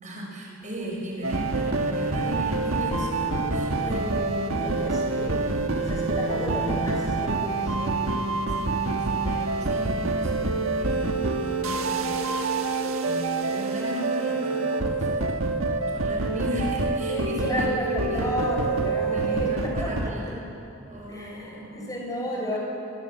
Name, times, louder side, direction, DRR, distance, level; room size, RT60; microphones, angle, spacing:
voice 1, 0.0-4.2 4.5-4.6 8.5-12.8 13.0-18.3 19.0-20.4 20.9-21.9 22.3-22.6, equal, 40° right, -2 dB, 5.9 m, -37 dB
sound 1, 0.6-14.8, left 2 dB, 45° left, 4.9 m, -42 dB
sound 2, 1.2-20.1, right 3 dB, 85° right, 1.4 m, -26 dB
voice 2, 3.9-5.5 5.7-8.2 17.1-20.1 21.1-22.6, left 1 dB, 20° left, -2 dB, 6.2 m, -32 dB
23.5 x 22.5 x 7.6 m, 2.8 s
head